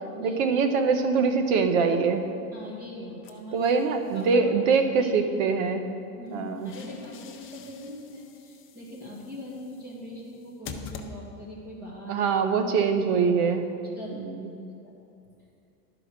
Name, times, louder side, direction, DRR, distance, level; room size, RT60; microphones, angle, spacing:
voice 1, 0.2-2.3 3.5-5.9 6.3-6.7 12.1-13.7 14.1-14.5, right 5 dB, 50° right, 7 dB, 1.1 m, -23 dB
voice 2, 2.5-3.7 4.1-4.5 5.0-5.1 6.2-12.2 14.0-14.4 14.8-14.9, left 1 dB, 20° right, -4 dB, 2.0 m, -41 dB
sound 1, 3.2-4.3 6.3-11.7, left 5 dB, 25° left, 0.7 m, -46 dB
12.0 x 5.0 x 6.3 m, 2.6 s
hypercardioid pair, 115°, 49 cm